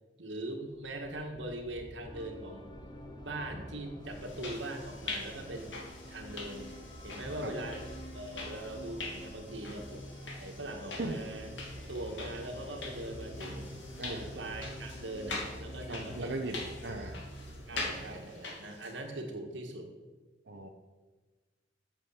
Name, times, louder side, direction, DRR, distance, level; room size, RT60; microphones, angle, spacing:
voice 1, 0.2-2.7 3.2-5.8 6.1-6.8 7.0-7.8 8.1-10.1 10.4-11.5 11.9-13.7 14.0-16.4 16.9-17.2 17.7-19.9, right 1 dB, 90° right, 3 dB, 1.8 m, -41 dB
sound 1, 0.7-18.2, equal, 35° right, 1.8 m, -48 dB
sound 2, 2.1-16.6, left 1 dB, 25° left, 1.0 m, -52 dB
sound 3, 4.1-19.1, left 3 dB, 90° left, 2.4 m, -44 dB
voice 2, 14.0-14.3 15.9-17.2 20.5-20.7, right 2 dB, 65° right, 1 dB, 0.9 m, -38 dB
8.4 x 7.5 x 7.3 m, 1.3 s
head